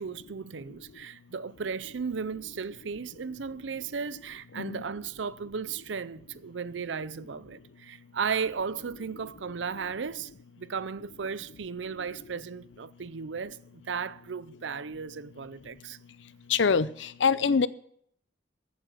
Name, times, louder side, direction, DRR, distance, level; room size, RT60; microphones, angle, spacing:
voice 1, 0.0-10.3 10.6-16.0, right 6 dB, 80° right, 0.6 m, -35 dB
voice 2, 16.5-17.7, left 5 dB, 80° left, 0.6 m, -24 dB
14.5 x 8.6 x 6.3 m
head